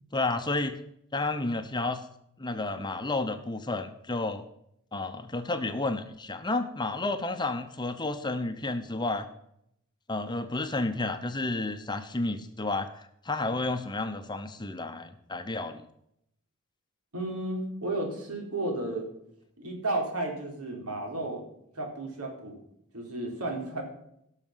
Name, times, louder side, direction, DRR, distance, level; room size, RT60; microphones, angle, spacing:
voice 1, 0.1-0.8 1.1-2.0 2.4-4.4 4.9-9.3 10.1-15.9, left 2 dB, 20° left, 8 dB, 0.8 m, -31 dB
voice 2, 17.1-19.1 19.6-21.4 21.8-22.6 22.9-23.8, right 2 dB, 80° right, 2 dB, 3.7 m, -33 dB
17.5 x 6.6 x 5.7 m, 0.75 s
head